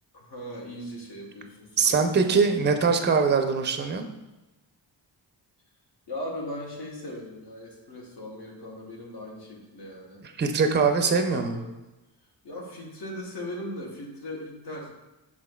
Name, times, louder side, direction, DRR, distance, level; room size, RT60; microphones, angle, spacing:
voice 1, 0.1-2.7 6.1-10.2 11.2-11.7 12.4-14.9, left 1 dB, 60° left, -3 dB, 1.2 m, -39 dB
voice 2, 1.8-4.1 10.2-11.6, right 5 dB, 25° right, 6 dB, 0.5 m, -22 dB
6.0 x 3.7 x 2.2 m, 1.0 s
cardioid pair, 65°, 46 cm